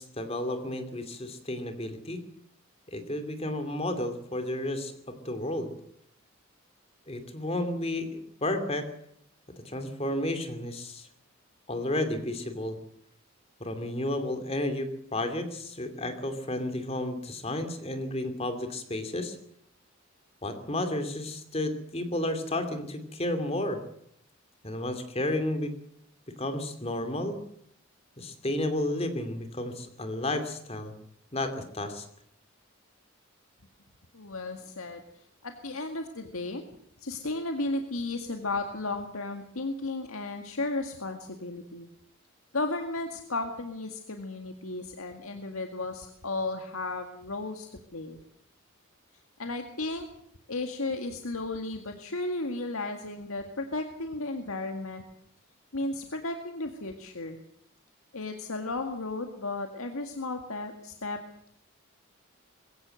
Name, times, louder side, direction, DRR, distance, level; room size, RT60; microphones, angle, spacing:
voice 1, 0.0-2.2 2.9-5.7 7.1-8.9 9.6-11.1 11.7-12.8 13.6-19.4 20.4-23.8 24.6-25.7 26.4-27.4 28.2-30.9 31.3-32.1, left 1 dB, 30° left, 8 dB, 2.7 m, -32 dB
voice 2, 34.1-35.0 35.4-36.6 37.0-41.9 42.5-48.2 49.4-50.1 50.5-55.0 55.7-57.4 58.1-61.2, left 2 dB, 90° left, 5 dB, 2.0 m, -34 dB
21.5 x 17.0 x 7.8 m, 0.71 s
head